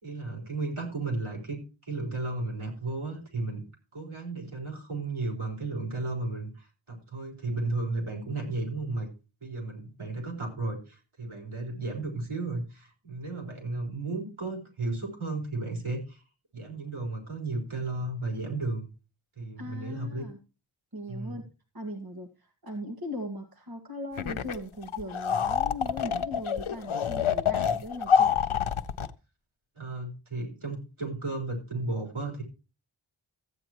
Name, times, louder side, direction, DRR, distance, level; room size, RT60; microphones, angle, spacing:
voice 1, 0.0-3.6 3.9-9.1 9.4-16.2 16.5-18.9 19.4-20.2 21.1-21.4 29.8-32.4, right 2 dB, 85° right, 0 dB, 4.3 m, -34 dB
voice 2, 19.6-20.4 20.9-21.4 21.7-28.4, left 1 dB, 50° right, 3 dB, 1.9 m, -39 dB
sound 1, 24.2-24.6 24.8-29.1, left 7 dB, 80° left, 0.7 m, -26 dB
14.5 x 8.9 x 3.0 m, 0.31 s
wide cardioid pair, 50°, 48 cm